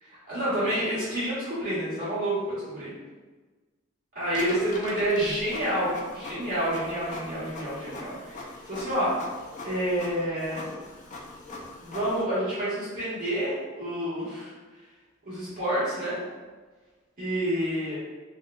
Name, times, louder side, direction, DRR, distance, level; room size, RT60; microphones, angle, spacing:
voice 1, 0.0-2.9 4.1-9.2 9.6-10.7 11.8-14.5 15.2-16.2 17.2-18.0, right 1 dB, 45° right, -11 dB, 1.3 m, -29 dB
Printer, 4.3-12.2, left 2 dB, 35° left, 0.4 m, -41 dB
3.5 x 2.3 x 2.3 m, 1.3 s
head